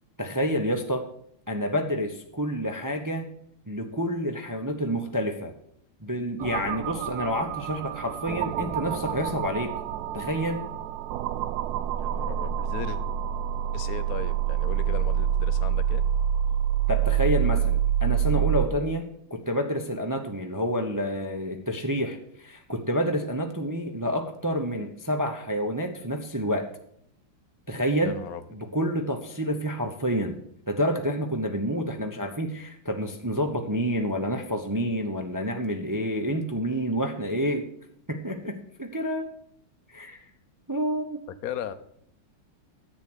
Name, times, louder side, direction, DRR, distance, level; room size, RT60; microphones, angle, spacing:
voice 1, 0.2-1.1 1.5-3.3 3.7-5.5 6.0-9.7 10.1-10.6 16.9-26.7 27.7-28.1 28.5-30.4 30.7-37.7 38.1-39.3 39.9-40.2 40.7-41.2, equal, 25° right, 4 dB, 0.4 m, -28 dB
sound 1, 6.4-18.7, right 10 dB, 85° right, 0.8 m, -27 dB
voice 2, 12.0-13.0 13.7-16.1 28.0-28.4 41.3-41.7, left 9 dB, 60° left, 11 dB, 1.0 m, -37 dB
10.5 x 8.3 x 6.2 m, 0.68 s
omnidirectional pair, 2.3 m